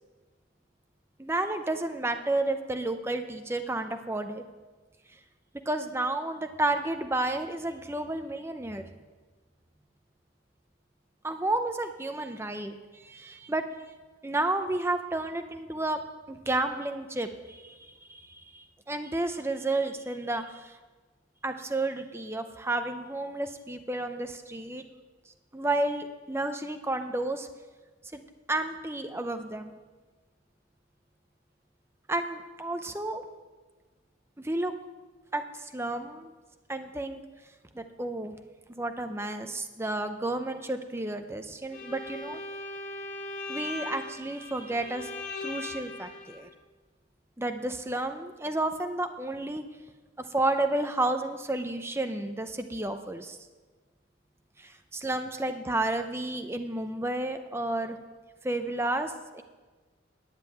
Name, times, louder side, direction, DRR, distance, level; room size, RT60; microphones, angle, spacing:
voice 1, 1.2-4.4 5.7-8.8 11.2-13.6 14.2-16.0 16.3-17.8 18.1-20.7 21.4-24.8 25.5-27.5 28.1-28.2 28.5-29.7 32.1-33.2 34.4-34.7 35.3-36.3 36.7-37.2 37.7-38.4 38.8-42.4 43.5-45.1 45.4-46.5 47.4-49.6 50.3-53.4 54.6-58.0 58.4-59.4, right 2 dB, 15° right, 8 dB, 0.6 m, -31 dB
Bowed string instrument, 41.7-46.4, left 3 dB, 45° left, 2.0 m, -39 dB
10.5 x 7.4 x 9.0 m, 1.3 s
head